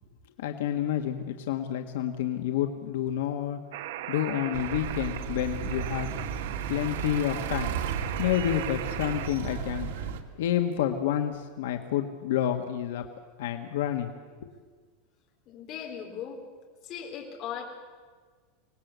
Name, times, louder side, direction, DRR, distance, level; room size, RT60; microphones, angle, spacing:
voice 1, 0.4-3.6 4.1-6.1 6.7-7.8 8.2-9.9 10.4-13.0 13.4-14.1 14.4-14.5, left 10 dB, 80° left, 5 dB, 1.6 m, -29 dB
sound 1, 3.7-9.3, right 12 dB, 70° right, 1.1 m, -38 dB
sound 2, 4.5-10.2, right 7 dB, 90° right, 2.3 m, -34 dB
voice 2, 15.5-16.4 16.8-17.6, left 8 dB, 30° left, 1 dB, 4.1 m, -38 dB
25.0 x 19.0 x 8.3 m, 1.5 s
supercardioid pair, 175°, 0 cm